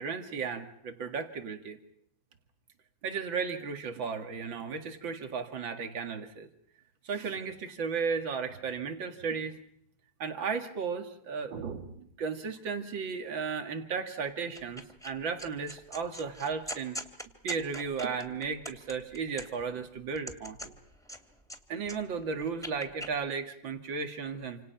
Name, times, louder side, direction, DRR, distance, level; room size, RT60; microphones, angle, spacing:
voice 1, 0.0-1.8 3.0-6.5 7.0-9.6 10.2-17.0 17.4-20.7 21.7-24.6, right 5 dB, 85° right, 6 dB, 2.7 m, -35 dB
sound 1, 14.6-15.1 15.4-19.7 20.1-21.6 21.8-23.1, equal, ahead, 2.8 m, -42 dB
28.0 x 27.5 x 5.8 m, 0.71 s
omnidirectional pair, 2.0 m